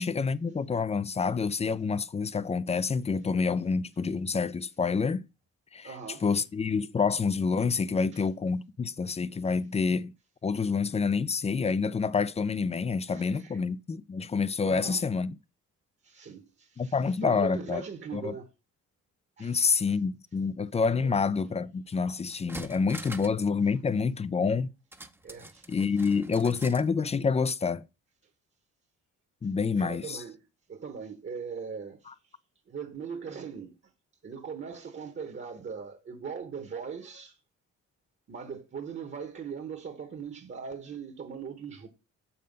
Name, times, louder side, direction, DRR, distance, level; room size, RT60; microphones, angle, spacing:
voice 1, 0.0-5.3 5.7-5.9 6.2-10.1 10.4-15.4 16.8-17.8 18.1-18.3 19.4-24.7 25.7-27.8 29.4-30.2, left 5 dB, 20° left, 0.4 m, -28 dB
voice 2, 5.8-6.2 8.1-8.3 13.1-13.6 14.6-15.0 16.0-18.5 19.4-20.0 21.0-21.2 22.6-22.7 23.0-23.1 25.2-25.7 26.2-26.5 29.8-32.3 32.7-33.7 34.2-37.4 38.3-41.9, right 6 dB, 40° right, 1.2 m, -40 dB
sound 1, 21.9-22.0 22.3-23.4 23.7-23.8 24.9-26.9 27.2-27.3, right 1 dB, 5° right, 0.7 m, -44 dB
6.5 x 5.5 x 5.3 m
cardioid pair, 90°, 30 cm